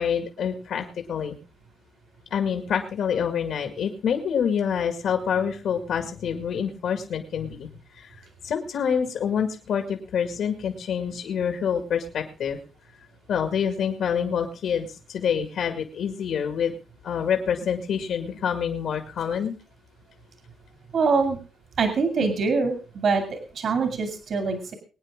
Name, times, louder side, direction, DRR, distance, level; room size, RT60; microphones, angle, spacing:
voice 1, 0.0-1.4 2.3-7.7 8.0-8.1 8.4-12.6 13.3-16.7 17.0-19.6, left 7 dB, 75° left, 5 dB, 2.1 m, -27 dB
voice 2, 20.9-21.4 21.8-24.7, right 4 dB, 55° right, 5 dB, 2.6 m, -24 dB
22.5 x 9.5 x 3.7 m, 0.35 s
wide cardioid pair, 145°, 0 cm